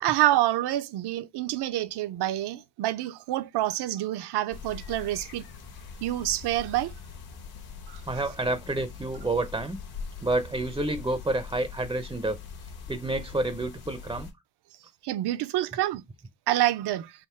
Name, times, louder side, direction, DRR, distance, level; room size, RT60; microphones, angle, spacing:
voice 1, 0.0-5.4 6.0-6.9 7.9-8.0 15.0-16.0 16.5-17.1, right 14 dB, 70° right, 0.5 m, -27 dB
sound 1, 4.5-14.3, left 6 dB, 65° left, 1.2 m, -42 dB
voice 2, 8.1-9.8 10.2-12.4 12.9-14.3, right 2 dB, 10° right, 0.4 m, -29 dB
3.6 x 2.5 x 4.3 m
cardioid pair, 80°, 41 cm